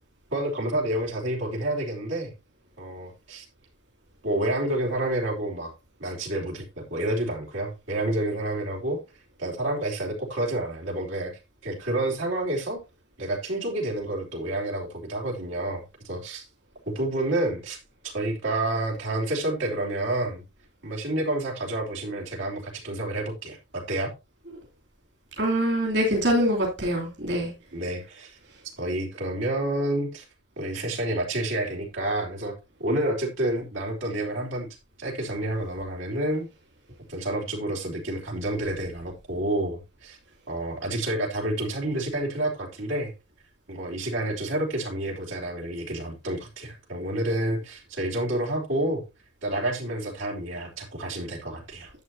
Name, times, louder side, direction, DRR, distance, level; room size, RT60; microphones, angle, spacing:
voice 1, 0.3-2.3 2.8-3.5 4.2-5.7 6.0-6.7 6.9-9.0 9.4-11.3 11.6-12.8 13.2-16.4 16.9-17.8 18.0-20.4 20.8-24.1 27.7-28.4 28.8-30.2 30.6-32.5 32.8-34.7 35.0-36.5 37.1-40.2 40.5-43.1 43.7-49.0 49.4-51.9, right 1 dB, 90° right, -2 dB, 3.4 m, -29 dB
voice 2, 25.4-27.5, equal, 65° right, -1 dB, 3.0 m, -24 dB
11.0 x 7.8 x 2.8 m, 0.25 s
head